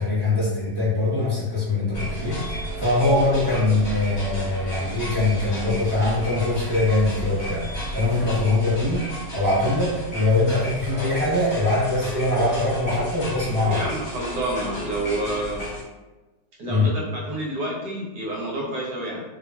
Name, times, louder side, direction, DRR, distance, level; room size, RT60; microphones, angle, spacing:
voice 1, 0.0-13.9 16.7-16.9, left 2 dB, 25° right, -10 dB, 0.5 m, -22 dB
sound 1, 1.9-15.8, equal, 35° left, 1.0 m, -33 dB
voice 2, 13.7-15.7 16.6-19.2, right 1 dB, 70° right, -4 dB, 1.2 m, -29 dB
3.0 x 2.4 x 2.2 m, 1.2 s
omnidirectional pair, 1.9 m